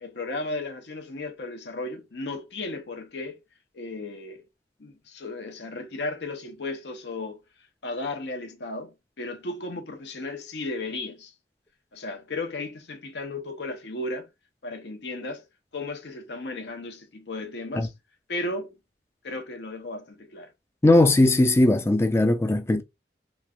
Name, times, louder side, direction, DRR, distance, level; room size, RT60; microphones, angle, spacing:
voice 1, 0.0-3.4 3.7-4.4 4.8-7.4 7.8-11.3 11.9-14.3 14.6-15.5 15.7-17.9 18.3-18.8 19.2-20.5, left 2 dB, 70° left, 0.7 m, -35 dB
voice 2, 20.8-22.8, left 2 dB, 15° left, 0.3 m, -19 dB
3.1 x 2.4 x 2.2 m
head